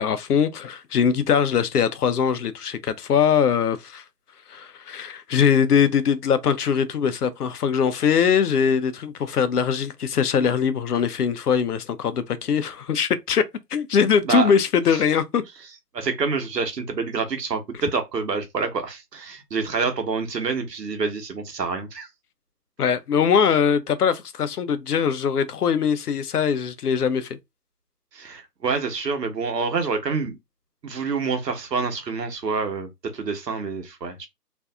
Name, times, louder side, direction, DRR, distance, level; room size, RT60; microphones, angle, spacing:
voice 1, 0.0-4.0 4.5-13.4 13.7-15.4 22.8-27.4, left 7 dB, 70° left, 0.6 m, -21 dB
voice 2, 15.9-22.1 28.1-30.4 30.8-34.3, right 5 dB, 80° right, 1.0 m, -27 dB
2.6 x 2.4 x 2.3 m
figure-of-eight pair, 155°, 49 cm